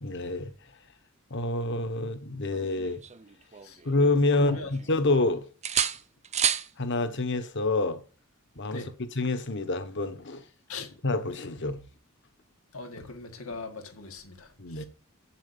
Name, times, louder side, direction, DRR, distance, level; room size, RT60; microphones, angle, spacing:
voice 1, 0.0-0.5 1.3-3.0 3.8-5.4 6.8-8.0 8.6-10.4 11.0-11.8 14.6-14.8, left 2 dB, 60° left, 1.3 m, -27 dB
sound 1, 2.5-4.0 4.4-5.2 5.6-6.7 8.6-8.8, right 8 dB, 35° right, 0.7 m, -31 dB
voice 2, 4.4-4.7 8.7-8.9 10.7-10.9 12.7-14.5 14.8-14.9, left 3 dB, 85° left, 2.1 m, -39 dB
8.5 x 7.5 x 6.9 m
head